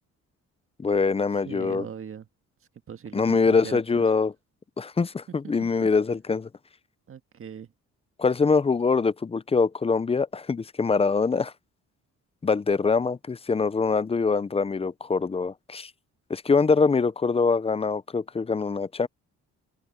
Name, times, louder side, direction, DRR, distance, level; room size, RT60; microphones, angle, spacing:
voice 1, 0.8-1.8 3.1-4.3 4.8-6.5 8.2-11.5 12.4-15.9 16.3-19.1, left 4 dB, 20° left, 0.6 m, -24 dB
voice 2, 1.4-2.3 2.9-4.1 5.6-5.9 7.1-7.7, right 7 dB, 45° right, 1.7 m, -40 dB
open air
cardioid pair, 90°, 30 cm